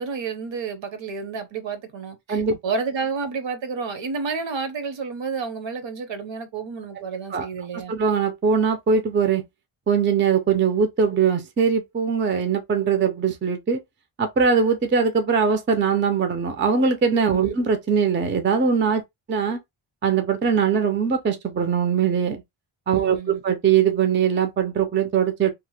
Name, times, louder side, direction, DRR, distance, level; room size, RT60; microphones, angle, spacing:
voice 1, 0.0-8.0 17.3-17.6 22.9-23.4, right 5 dB, 65° right, 0.8 m, -30 dB
voice 2, 7.7-9.4 9.9-13.8 14.2-19.0 19.3-19.6 20.0-22.4 22.9-25.5, right 6 dB, 25° right, 0.4 m, -21 dB
2.9 x 2.0 x 3.1 m
wide cardioid pair, 175°, 49 cm